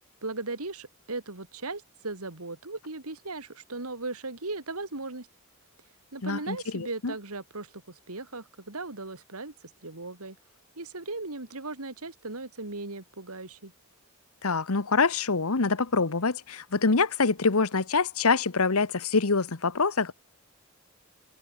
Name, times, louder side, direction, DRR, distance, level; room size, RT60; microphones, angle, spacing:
voice 1, 0.2-5.3 6.1-10.4 10.8-13.7, right 3 dB, 85° right, 2.9 m, -37 dB
voice 2, 6.2-7.1 14.4-20.1, left 4 dB, 80° left, 1.2 m, -25 dB
head